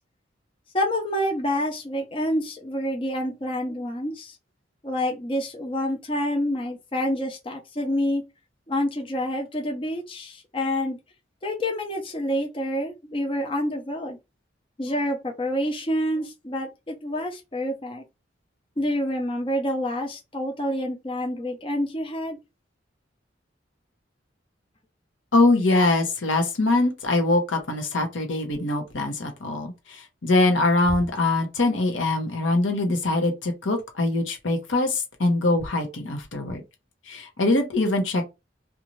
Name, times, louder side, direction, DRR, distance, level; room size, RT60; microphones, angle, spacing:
voice 1, 0.7-4.4 4.8-8.2 8.7-11.0 11.4-14.2 14.8-18.0 18.8-22.4, equal, 30° left, 0.5 m, -27 dB
voice 2, 25.3-36.6 37.1-38.2, left 2 dB, 85° left, 0.8 m, -23 dB
2.6 x 2.3 x 3.0 m
head